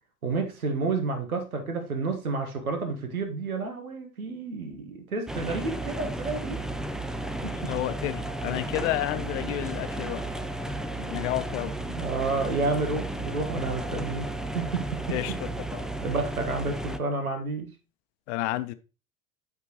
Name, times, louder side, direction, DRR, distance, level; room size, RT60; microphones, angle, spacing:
voice 1, 0.2-6.6 7.4-7.7 11.0-11.1 11.9-15.3 16.0-17.7, right 3 dB, 80° right, 5 dB, 1.6 m, -30 dB
sound 1, 5.3-17.0, right 1 dB, ahead, 0.4 m, -33 dB
voice 2, 7.7-10.2 11.1-11.7 15.1-15.3 15.7-15.8 18.3-18.7, left 15 dB, 55° left, 13 dB, 0.8 m, -30 dB
12.5 x 4.3 x 3.0 m, 0.31 s
figure-of-eight pair, 70°, 42 cm